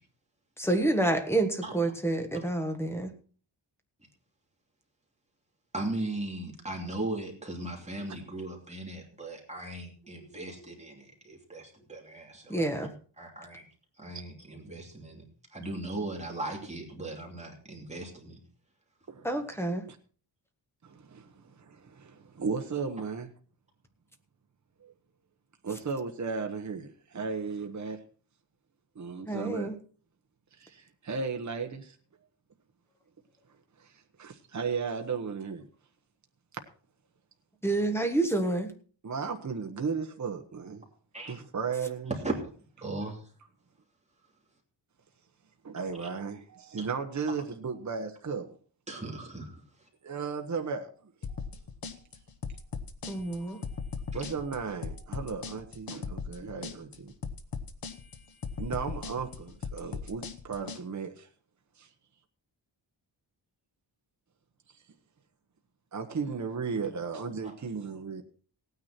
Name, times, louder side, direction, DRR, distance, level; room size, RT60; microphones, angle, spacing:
voice 1, 0.6-3.1 12.5-12.9 19.2-19.8 29.3-29.7 37.6-38.7 53.1-53.6, right 2 dB, 5° left, 1.4 m, -28 dB
voice 2, 5.7-12.9 13.2-13.6 14.0-15.2 15.5-18.4 41.1-41.3 42.1-42.5 42.8-43.3 46.0-46.1 46.8-46.9 48.9-49.6, right 2 dB, 15° right, 3.0 m, -38 dB
voice 3, 19.1-19.6 20.8-23.3 24.8-24.9 25.6-28.0 28.9-29.7 30.6-31.9 33.8-33.9 34.2-35.7 39.0-40.9 41.2-42.1 45.6-48.6 50.0-50.9 51.3-51.5 53.1-53.2 53.7-53.8 54.1-57.1 58.6-61.3 61.8-61.9 65.9-68.2, right 5 dB, 40° right, 1.2 m, -35 dB
sound 1, 51.2-60.8, left 5 dB, 50° left, 1.1 m, -38 dB
17.0 x 9.6 x 4.4 m
wide cardioid pair, 175°, 46 cm